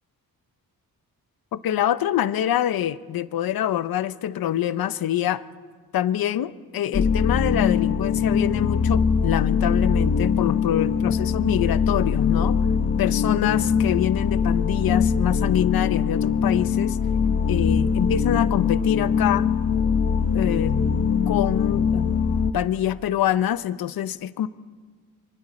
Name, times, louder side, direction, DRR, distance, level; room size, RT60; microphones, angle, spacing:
voice 1, 1.5-5.4 5.9-12.6 13.0-17.0 17.5-19.5 20.3-20.8 21.3-24.5, left 11 dB, 75° left, 14 dB, 0.8 m, -25 dB
sound 1, 6.9-22.5, left 6 dB, 45° left, 1.0 m, -22 dB
25.5 x 24.5 x 4.3 m, 1.5 s
cardioid pair, 90°, 36 cm